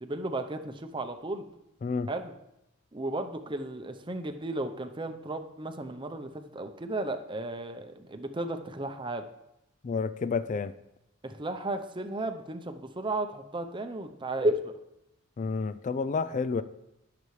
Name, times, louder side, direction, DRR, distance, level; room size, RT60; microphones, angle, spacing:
voice 1, 0.0-1.5 2.1-2.3 2.9-9.3 11.2-14.7, right 2 dB, 25° right, 7 dB, 0.7 m, -34 dB
voice 2, 9.8-10.7 15.4-16.6, left 4 dB, 35° left, 14 dB, 0.3 m, -30 dB
17.5 x 6.8 x 3.2 m, 0.87 s
head